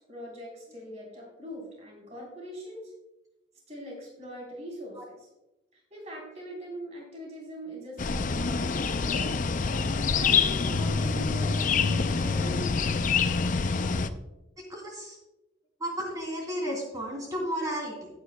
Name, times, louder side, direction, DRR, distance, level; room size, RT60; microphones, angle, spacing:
voice 1, 0.1-2.9 3.7-5.3 5.7-9.4 10.0-12.8, equal, 35° right, -3 dB, 3.7 m, -41 dB
sound 1, 8.0-14.1, left 5 dB, 40° left, 0.4 m, -26 dB
voice 2, 14.7-15.2 15.8-18.1, equal, 20° right, -2 dB, 2.7 m, -33 dB
14.5 x 9.6 x 2.2 m, 0.97 s
head